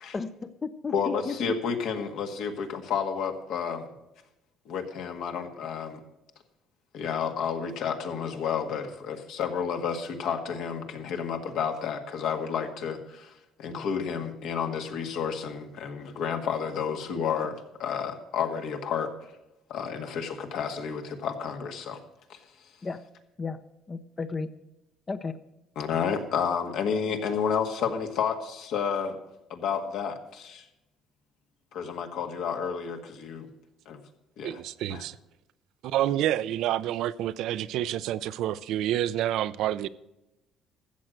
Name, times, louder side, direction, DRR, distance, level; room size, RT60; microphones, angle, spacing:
voice 1, 0.1-1.4 13.7-13.9 22.8-23.0 23.4-23.6 23.9-24.5 25.1-25.4, left 4 dB, 25° left, 0.6 m, -34 dB
voice 2, 0.9-3.9 4.7-6.0 6.9-13.3 13.6-19.1 19.7-22.0 22.3-22.4 25.8-29.2 29.5-30.6 31.7-33.5 33.9-34.0 34.4-34.6 34.9-35.0, left 7 dB, 70° left, 1.8 m, -31 dB
voice 3, 34.4-35.2 35.8-39.9, right 12 dB, 75° right, 0.5 m, -28 dB
13.5 x 7.8 x 6.5 m
cardioid pair, 120°, 0 cm